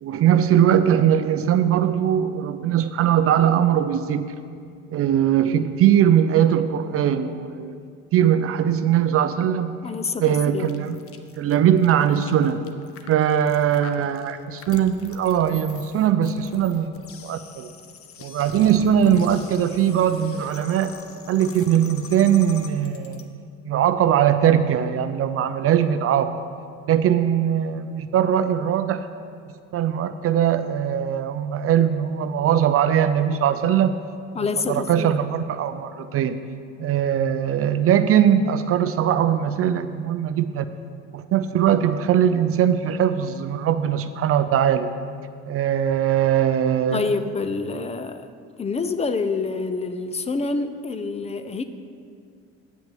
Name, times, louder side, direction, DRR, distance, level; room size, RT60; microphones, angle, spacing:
voice 1, 0.0-4.3 4.9-7.8 8.1-9.7 10.2-11.0 11.4-12.7 13.1-16.9 17.2-17.7 18.2-20.9 21.3-23.2 23.6-26.4 26.9-29.1 29.7-34.0 34.7-36.4 36.8-40.7 41.1-44.9 45.5-47.0, right 9 dB, 45° right, 10 dB, 0.5 m, -20 dB
voice 2, 9.8-10.7 34.3-35.2 46.9-48.3 48.6-51.6, left 4 dB, 20° left, 10 dB, 0.6 m, -27 dB
sound 1, 10.6-23.2, left 5 dB, 45° left, 0.9 m, -42 dB
8.8 x 5.9 x 7.5 m, 2.3 s
supercardioid pair, 90°, 33 cm